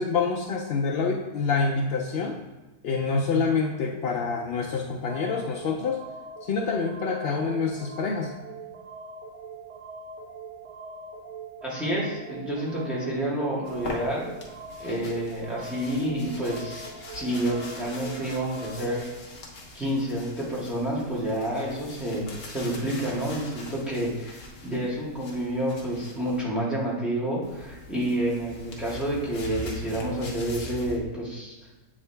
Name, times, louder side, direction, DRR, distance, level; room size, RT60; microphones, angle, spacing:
voice 1, 0.0-2.4 2.8-6.0 6.4-8.3, left 4 dB, 80° left, 1 dB, 0.5 m, -27 dB
sound 1, 5.1-19.0, right 3 dB, 55° right, 1.0 m, -42 dB
voice 2, 11.6-14.3 14.8-16.8 17.1-19.1 19.7-31.5, right 1 dB, ahead, -6 dB, 1.5 m, -29 dB
sound 2, 13.6-26.4 27.4-31.0, left 2 dB, 45° left, 1.0 m, -42 dB
7.8 x 3.6 x 3.3 m, 1.1 s
omnidirectional pair, 1.6 m